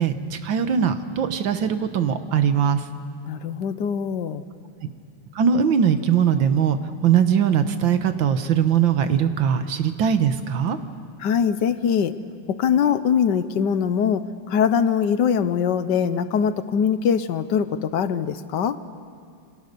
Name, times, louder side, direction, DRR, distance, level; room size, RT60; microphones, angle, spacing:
voice 1, 0.0-2.9 4.8-4.9 5.4-10.8, right 8 dB, 80° right, 9 dB, 1.9 m, -21 dB
voice 2, 3.3-4.4 11.2-12.1 12.5-18.8, left 7 dB, 70° left, 13 dB, 1.4 m, -22 dB
28.0 x 25.5 x 6.8 m, 2.3 s
omnidirectional pair, 2.0 m